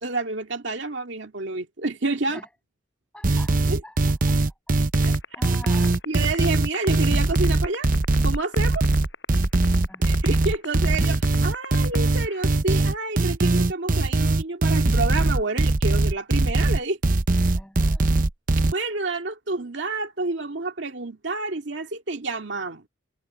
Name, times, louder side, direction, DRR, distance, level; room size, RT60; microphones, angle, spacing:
voice 1, 0.0-2.4 3.6-3.8 5.0-5.1 6.1-7.9 8.2-8.9 10.1-17.0 18.6-22.9, right 3 dB, 70° right, 2.2 m, -29 dB
voice 2, 3.1-4.8 5.1-6.0 9.9-10.3 17.5-18.1, left 1 dB, 5° left, 7.9 m, -46 dB
sound 1, 3.2-18.7, right 2 dB, 45° right, 0.8 m, -21 dB
sound 2, 4.9-12.5, left 4 dB, 65° left, 6.7 m, -33 dB
head